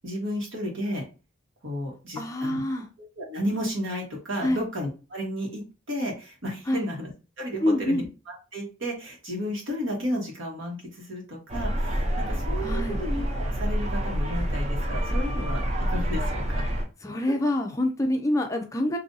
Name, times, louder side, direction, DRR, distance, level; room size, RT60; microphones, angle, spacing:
voice 1, 0.0-1.0 1.6-2.6 3.2-7.1 7.4-8.0 8.5-15.6 15.9-16.6 17.3-17.4, equal, 75° right, -1 dB, 1.5 m, -33 dB
voice 2, 2.2-2.9 4.4-4.7 6.7-6.9 7.6-8.1 12.6-13.0 17.0-19.0, left 1 dB, 15° left, 4 dB, 0.4 m, -26 dB
sound 1, 11.5-16.8, equal, 35° right, 0.6 m, -27 dB
2.7 x 2.6 x 3.8 m, 0.32 s
head